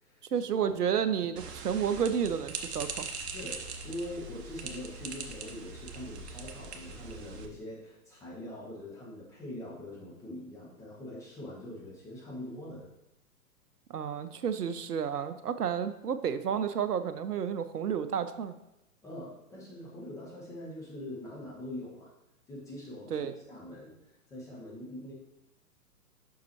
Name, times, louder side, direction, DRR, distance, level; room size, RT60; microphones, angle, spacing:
voice 1, 0.3-3.1 13.9-18.5 23.1-23.3, right 7 dB, 85° right, 11 dB, 0.6 m, -31 dB
sound 1, 1.4-7.5, right 4 dB, 45° right, 0.9 m, -41 dB
voice 2, 3.2-12.9 19.0-22.1 22.5-25.1, left 1 dB, 5° left, -6 dB, 0.7 m, -43 dB
7.0 x 5.5 x 3.0 m, 0.89 s
figure-of-eight pair, 115°, 46 cm